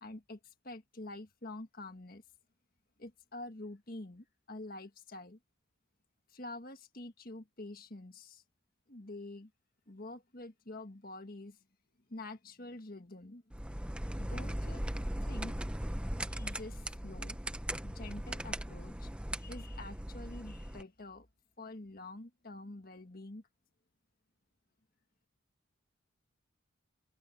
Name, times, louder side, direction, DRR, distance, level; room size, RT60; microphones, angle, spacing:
voice 1, 0.0-2.2 3.0-5.4 6.3-8.4 8.9-9.5 9.9-11.6 12.1-13.4 14.2-14.8 15.2-15.5 16.3-17.4 17.8-19.1 19.4-21.3 21.6-23.4, left 2 dB, 45° left, 1.7 m, -47 dB
sound 1, 13.5-20.8, right 1 dB, 5° right, 0.7 m, -39 dB
head